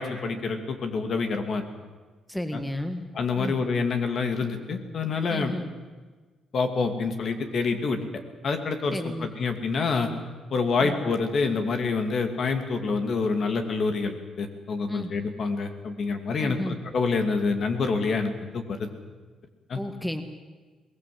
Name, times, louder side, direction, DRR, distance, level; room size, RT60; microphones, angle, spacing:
voice 1, 0.0-1.7 2.5-2.6 3.1-5.5 6.5-8.0 8.4-9.0 9.4-10.1 10.5-18.9 19.7-19.8, left 4 dB, 55° left, 6 dB, 2.6 m, -27 dB
voice 2, 2.3-3.0 3.4-3.6 5.3-5.7 8.9-9.3 10.8-11.0 14.9-15.1 16.4-16.8 19.7-20.2, left 1 dB, 5° left, 7 dB, 1.9 m, -32 dB
22.5 x 18.5 x 7.9 m, 1.4 s
cardioid pair, 90°, 0 cm